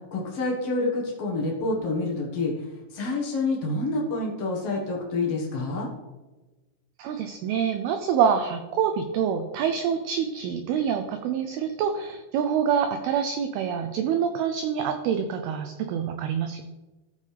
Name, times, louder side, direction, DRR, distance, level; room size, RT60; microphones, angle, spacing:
voice 1, 0.1-2.5 2.9-5.9, left 2 dB, 90° left, -2 dB, 1.3 m, -27 dB
voice 2, 7.0-16.6, right 7 dB, 90° right, 7 dB, 2.2 m, -26 dB
15.0 x 5.4 x 3.3 m, 1.1 s
omnidirectional pair, 5.1 m